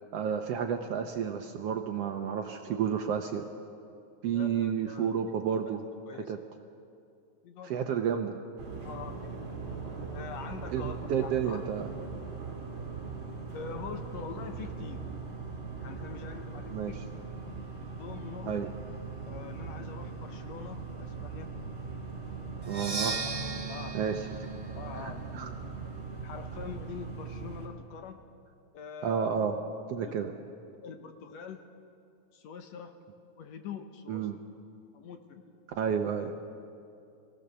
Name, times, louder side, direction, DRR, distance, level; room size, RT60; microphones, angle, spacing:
voice 1, 0.1-3.4 4.2-5.8 6.1-6.4 7.6-8.4 10.7-11.9 16.7-16.9 18.5-18.7 22.7-23.2 23.9-24.5 24.9-25.5 29.0-29.6 29.9-30.3 34.1-34.4 35.8-36.3, right 8 dB, 70° right, 5 dB, 1.6 m, -31 dB
voice 2, 4.3-5.1 5.7-5.8 6.1-6.3 7.4-7.9 8.8-9.5 10.1-11.7 13.5-15.1 15.8-17.0 18.0-18.7 19.3-21.5 23.7-24.2 24.8-25.7 26.2-28.2 28.7-29.3 30.0-30.2 30.8-31.6 32.3-32.9 33.4-34.3 34.9-35.6, left 6 dB, 70° left, 6 dB, 2.0 m, -44 dB
sound 1, 8.6-27.7, right 4 dB, 45° right, 3.0 m, -40 dB
Percussion, 22.6-26.4, right 4 dB, 25° right, 0.7 m, -38 dB
23.0 x 16.5 x 6.8 m, 2.5 s
omnidirectional pair, 3.5 m